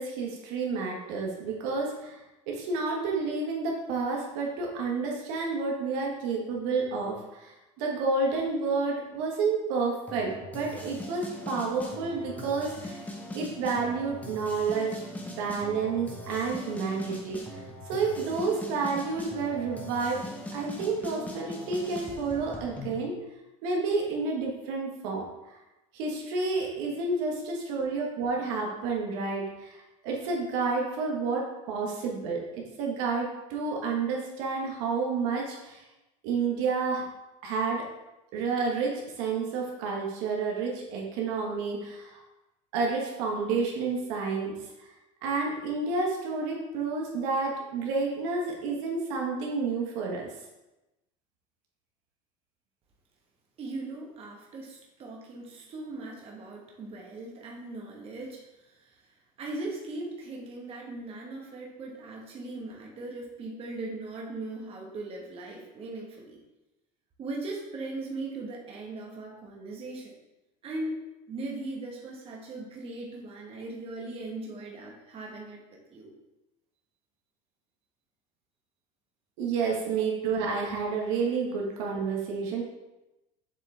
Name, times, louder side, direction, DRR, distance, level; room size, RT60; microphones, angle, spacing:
voice 1, 0.0-13.0 13.3-15.0 15.4-17.6 17.9-20.2 20.5-23.2 23.6-25.6 25.9-35.8 36.2-37.0 37.4-37.9 38.3-42.2 42.7-44.9 45.2-50.3 79.4-82.6, right 4 dB, 70° right, -1 dB, 1.3 m, -30 dB
sound 1, 10.1-23.0, left 1 dB, 10° left, 0.9 m, -41 dB
voice 2, 53.6-59.1 59.4-66.4 67.2-70.2 70.6-70.9 71.3-76.1 79.7-79.9, right 2 dB, 35° right, -1 dB, 1.3 m, -39 dB
7.4 x 3.8 x 3.4 m, 0.99 s
supercardioid pair, 125°, 18 cm